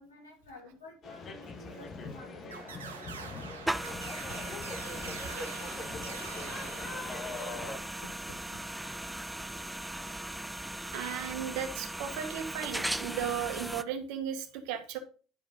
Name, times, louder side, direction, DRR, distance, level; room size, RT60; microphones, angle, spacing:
voice 1, 0.0-2.6 7.5-8.6, left 2 dB, 90° left, 1 dB, 2.3 m, -52 dB
sound 1, 1.0-7.8, left 3 dB, 45° left, 1.4 m, -42 dB
sound 2, 2.5-7.7, right 6 dB, 90° right, 0.8 m, -46 dB
sound 3, 3.7-13.8, right 1 dB, 5° right, 0.5 m, -38 dB
voice 2, 10.9-15.0, right 8 dB, 70° right, 7 dB, 1.3 m, -36 dB
10.5 x 4.9 x 3.7 m, 0.37 s
hypercardioid pair, 65°, 0 cm